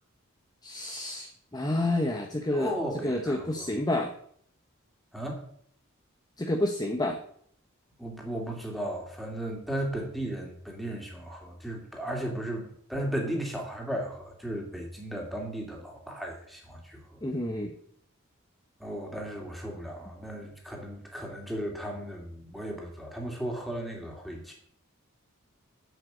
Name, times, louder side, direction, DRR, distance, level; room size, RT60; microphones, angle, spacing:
voice 1, 0.6-2.7 3.0-4.1 6.4-7.2 17.2-17.8, left 1 dB, 20° left, 4 dB, 0.8 m, -29 dB
voice 2, 2.5-3.7 5.1-5.4 8.0-17.2 18.8-24.5, right 1 dB, ahead, 0 dB, 2.5 m, -35 dB
8.0 x 7.6 x 7.8 m, 0.64 s
head